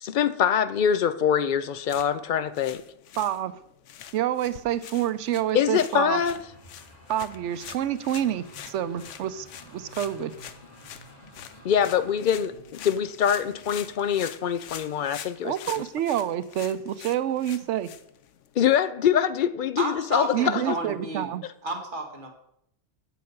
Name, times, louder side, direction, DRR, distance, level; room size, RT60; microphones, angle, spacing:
voice 1, 0.0-2.8 5.5-6.4 11.6-15.5 18.6-20.6 21.4-21.5, left 8 dB, 60° left, 0.5 m, -24 dB
sound 1, 1.8-18.6, left 10 dB, 90° left, 1.0 m, -45 dB
voice 2, 3.2-3.5 4.1-6.2 7.1-9.5 9.7-10.3 15.4-17.9 20.3-21.4, right 11 dB, 90° right, 0.9 m, -28 dB
sound 2, 5.4-14.8, equal, 35° left, 2.5 m, -52 dB
voice 3, 19.8-21.3 21.6-22.3, right 2 dB, 45° right, 1.8 m, -31 dB
7.6 x 7.3 x 5.4 m
omnidirectional pair, 1.2 m